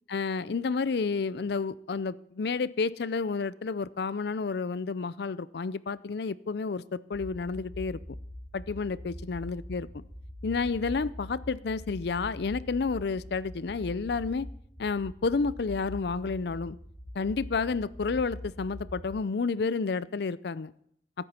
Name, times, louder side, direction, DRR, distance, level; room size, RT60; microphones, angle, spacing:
voice 1, 0.1-8.0 8.5-10.0 10.4-14.5 14.8-16.8 17.2-20.7, left 4 dB, 60° left, 18 dB, 0.5 m, -30 dB
sound 1, 7.1-19.1, left 1 dB, 25° left, 3.6 m, -43 dB
16.5 x 9.1 x 4.3 m, 0.72 s
head